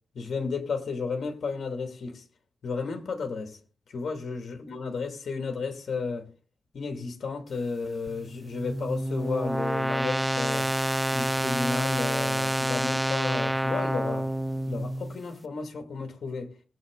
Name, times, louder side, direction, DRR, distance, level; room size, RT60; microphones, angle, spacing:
voice 1, 0.1-2.2 2.6-3.6 3.9-6.3 6.7-10.7 11.1-14.3 14.7-16.5, left 4 dB, 65° left, 2.5 m, -33 dB
sound 1, 8.1-15.2, right 1 dB, 5° right, 0.6 m, -28 dB
20.0 x 7.9 x 3.9 m
wide cardioid pair, 130°, 0 cm